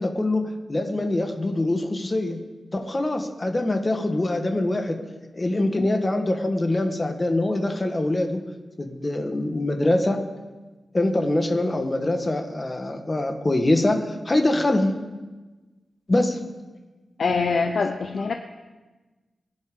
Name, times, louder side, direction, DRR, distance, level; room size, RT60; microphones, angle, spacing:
voice 1, 0.0-2.4 2.7-5.0 5.3-8.5 8.8-10.2 10.9-14.9 16.1-16.4, left 1 dB, 25° left, 5 dB, 1.4 m, -24 dB
voice 2, 17.2-18.3, left 4 dB, 65° left, 5 dB, 0.8 m, -24 dB
23.0 x 10.5 x 3.8 m, 1.2 s
wide cardioid pair, 130°, 0 cm